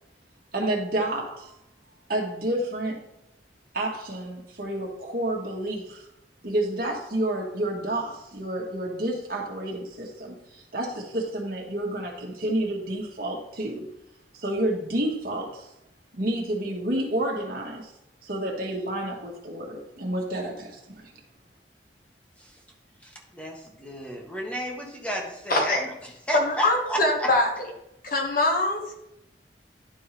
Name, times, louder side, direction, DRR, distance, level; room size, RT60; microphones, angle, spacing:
voice 1, 0.5-1.5 2.1-3.0 3.7-6.1 6.4-13.9 14.3-15.7 16.1-17.9 18.2-20.8, right 1 dB, 55° right, 0 dB, 1.6 m, -29 dB
voice 2, 23.0-25.7 26.3-27.3, equal, 10° left, 0 dB, 1.4 m, -32 dB
voice 3, 25.5-25.8 26.3-27.5 28.0-28.9, left 2 dB, 55° left, 1 dB, 1.5 m, -23 dB
11.5 x 4.5 x 3.3 m, 0.85 s
head